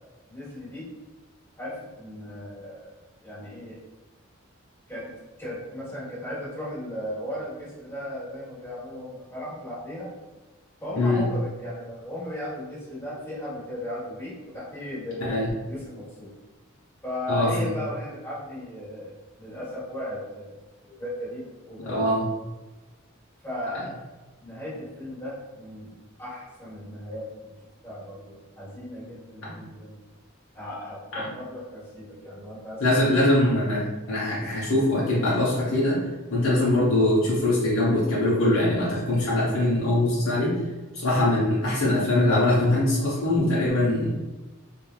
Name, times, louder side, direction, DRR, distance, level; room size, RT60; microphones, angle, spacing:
voice 1, 0.3-0.8 1.6-2.9 3.2-3.8 4.9-10.1 10.8-16.3 17.0-20.5 20.8-22.0 23.4-23.9 24.4-25.9 26.2-27.5 27.8-30.0 30.5-33.2, equal, 10° left, -9 dB, 1.3 m, -36 dB
voice 2, 11.0-11.3 15.2-15.5 17.3-17.7 21.9-22.3 29.4-29.6 31.1-31.2 32.8-36.0 36.3-40.6 40.9-44.1, left 1 dB, 70° left, -7 dB, 0.7 m, -22 dB
3.1 x 2.4 x 2.4 m, 1.1 s
head